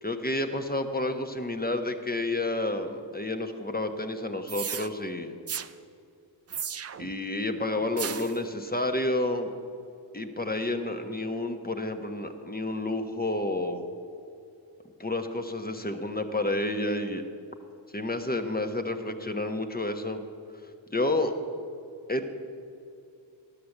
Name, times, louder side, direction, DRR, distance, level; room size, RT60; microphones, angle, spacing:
voice 1, 0.0-5.3 7.0-9.5 10.1-13.8 15.0-17.2 17.9-20.2 20.9-21.3 22.1-22.3, left 2 dB, 20° left, 6 dB, 1.0 m, -30 dB
sound 1, 4.5-4.9 5.5-5.7 6.5-7.1 8.0-8.4, right 7 dB, 35° right, 0.5 m, -34 dB
11.0 x 6.6 x 7.2 m, 2.5 s
supercardioid pair, 40°, 48 cm